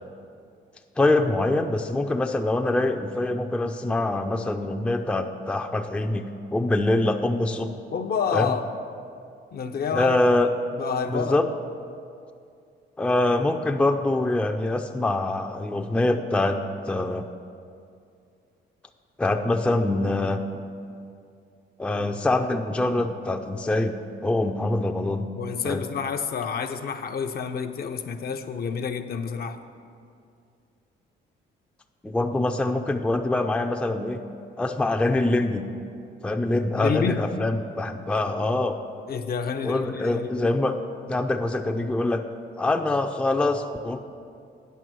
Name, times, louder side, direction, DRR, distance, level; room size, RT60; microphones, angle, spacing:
voice 1, 1.0-6.2 6.5-7.7 8.3-8.5 9.9-10.5 11.1-11.5 13.0-17.3 19.2-20.4 21.8-24.0 24.2-25.3 25.6-25.8 32.0-34.2 34.6-35.6 36.2-38.8 39.6-40.8 41.1-42.2 42.6-44.0, left 2 dB, 5° left, 5 dB, 0.4 m, -24 dB
voice 2, 7.9-8.7 9.5-10.2 10.8-11.4 25.3-29.6 36.7-37.2 39.1-40.3, left 6 dB, 50° left, 7 dB, 0.6 m, -29 dB
9.3 x 6.0 x 6.2 m, 2.4 s
cardioid pair, 90°, 20 cm